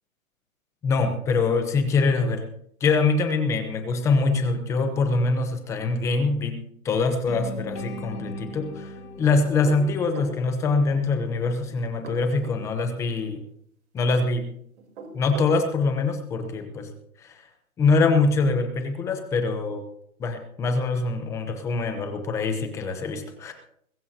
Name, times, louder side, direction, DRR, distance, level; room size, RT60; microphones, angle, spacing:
voice 1, 0.8-2.4 2.8-13.4 13.9-14.5 15.1-16.9 17.2-17.4 17.8-19.8 20.2-23.5, left 3 dB, 5° left, 7 dB, 0.8 m, -24 dB
sound 1, 7.3-11.3, left 2 dB, 50° left, 3.2 m, -39 dB
sound 2, 9.5-10.4 11.9-12.6 14.8-15.6, right 4 dB, 50° right, 3.8 m, -39 dB
22.0 x 14.0 x 2.8 m, 0.70 s
hypercardioid pair, 160°, 43 cm